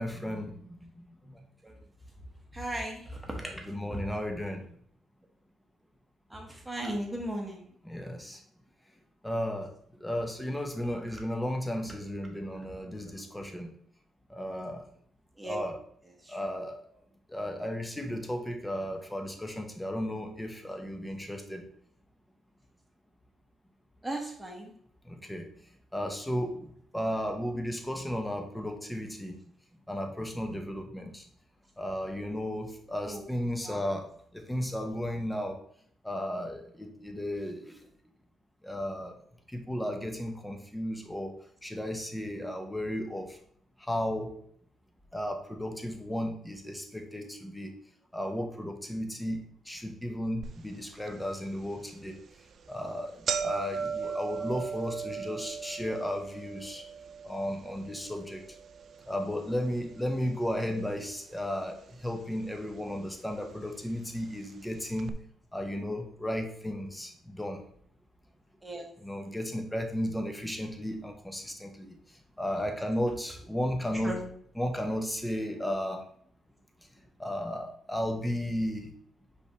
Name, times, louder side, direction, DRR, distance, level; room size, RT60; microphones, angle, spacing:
voice 1, 0.0-1.4 3.4-4.7 7.8-8.4 9.2-9.7 10.0-13.7 14.3-14.8 15.4-15.8 16.3-16.8 17.3-21.6 25.0-25.5 25.9-26.6 26.9-29.4 29.9-31.3 31.8-34.0 34.3-35.6 36.0-37.8 38.6-39.1 39.5-41.3 41.6-43.4 43.8-44.3 45.1-47.7 48.1-49.4 49.7-52.2 52.7-56.8 57.2-58.4 59.1-65.1 65.5-67.6 69.0-71.9 72.4-74.1 74.6-76.1 77.2-78.9, equal, 5° left, 4 dB, 0.8 m, -34 dB
voice 2, 1.3-1.7 2.5-4.0 6.3-7.7 15.4-15.6 16.2-16.4 24.0-24.7 33.0-33.2 33.6-33.8 53.9-54.1 68.6-68.9 73.9-74.2, right 1 dB, 10° right, 1 dB, 1.2 m, -37 dB
sound 1, 50.4-50.5 51.1-51.2 52.0-52.2 52.5-52.6 52.9-61.1 61.4-62.1 62.9-63.0 63.9-64.0 64.3-64.4 65.0-65.1, right 6 dB, 55° right, 0.3 m, -37 dB
5.1 x 3.4 x 3.0 m, 0.63 s
cardioid pair, 90°, 0 cm